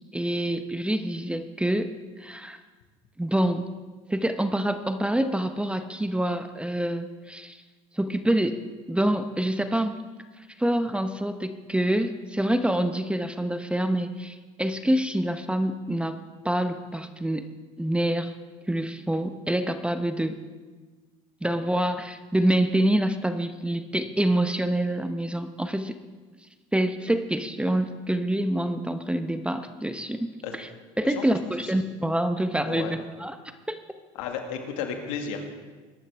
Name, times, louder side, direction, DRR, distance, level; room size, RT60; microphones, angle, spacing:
voice 1, 0.1-1.9 2.2-2.6 3.2-3.7 4.1-7.6 8.0-8.6 8.9-10.0 10.6-17.5 17.8-18.3 18.7-20.4 21.4-26.0 26.7-30.7 31.0-33.4 33.7-33.8, right 1 dB, 5° right, 9 dB, 0.9 m, -26 dB
voice 2, 34.2-35.4, left 7 dB, 80° left, 4 dB, 1.9 m, -33 dB
21.5 x 11.5 x 3.5 m, 1.3 s
hypercardioid pair, 80°, 17 cm